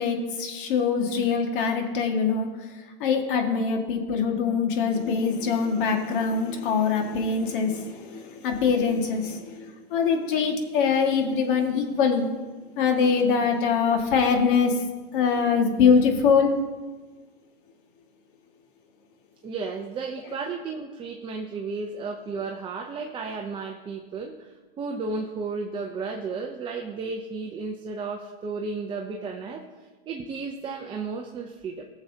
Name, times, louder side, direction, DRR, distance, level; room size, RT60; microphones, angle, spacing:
voice 1, 0.0-2.5 3.0-12.3 12.8-14.7 15.1-16.5, left 6 dB, 60° left, 3 dB, 1.9 m, -23 dB
voice 2, 19.4-24.5 24.8-31.8, right 4 dB, 15° right, 2 dB, 0.6 m, -33 dB
18.5 x 7.1 x 2.8 m, 1.3 s
supercardioid pair, 140°, 29 cm